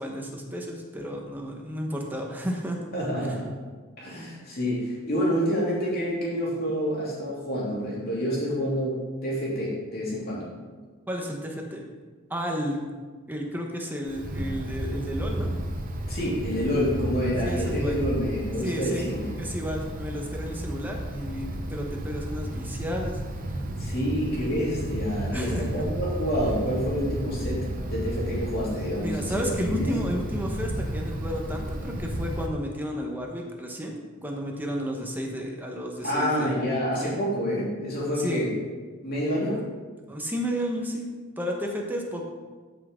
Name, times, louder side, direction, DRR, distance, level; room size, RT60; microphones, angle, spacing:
voice 1, 0.0-2.8 11.1-11.8 12.3-12.8 13.3-15.5 17.4-18.1 18.6-19.1 19.4-23.2 25.3-25.7 29.0-36.7 37.0-37.1 38.1-38.5 40.1-41.1 41.4-42.2, equal, 10° right, 0 dB, 1.0 m, -32 dB
voice 2, 2.9-3.5 4.0-8.9 9.2-10.5 16.1-19.3 23.8-29.9 36.0-38.5 39.0-39.6, equal, 45° left, -6 dB, 3.2 m, -28 dB
Wind, 14.1-32.5, right 1 dB, 40° right, 0.8 m, -32 dB
13.0 x 6.0 x 3.7 m, 1.4 s
head